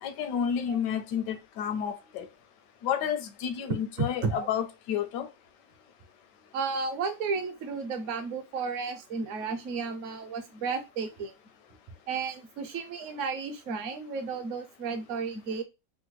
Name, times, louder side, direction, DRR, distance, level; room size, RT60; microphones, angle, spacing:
voice 1, 0.0-2.3 2.8-5.3, left 8 dB, 80° left, 1.2 m, -31 dB
voice 2, 4.0-4.5 6.5-11.3 12.1-15.6, right 4 dB, 60° right, 0.9 m, -33 dB
3.5 x 2.1 x 3.0 m
omnidirectional pair, 1.9 m